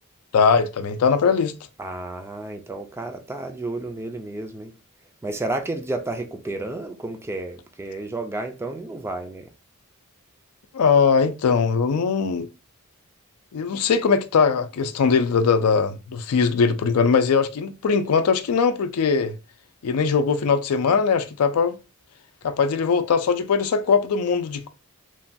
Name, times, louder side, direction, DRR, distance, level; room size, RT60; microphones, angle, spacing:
voice 1, 0.3-1.5 10.7-12.5 13.5-19.3 19.8-21.8 22.4-24.7, left 5 dB, 80° left, 0.4 m, -20 dB
voice 2, 1.8-4.7 5.2-9.5, right 2 dB, 10° right, 0.3 m, -31 dB
3.1 x 2.2 x 2.5 m
head